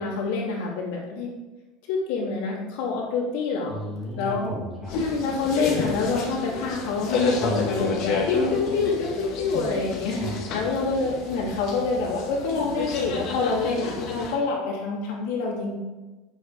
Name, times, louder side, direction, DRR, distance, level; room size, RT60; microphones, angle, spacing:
voice 1, 0.0-1.3 1.9-3.8 4.2-4.4 5.0-15.8, left 4 dB, 75° left, -3 dB, 3.2 m, -27 dB
voice 2, 3.7-4.9 7.3-7.6 10.1-10.4, right 1 dB, ahead, -6 dB, 2.6 m, -33 dB
sound 1, 4.8-14.3, left 4 dB, 45° left, 2.0 m, -30 dB
8.8 x 6.7 x 5.1 m, 1.2 s
cardioid pair, 175°, 0 cm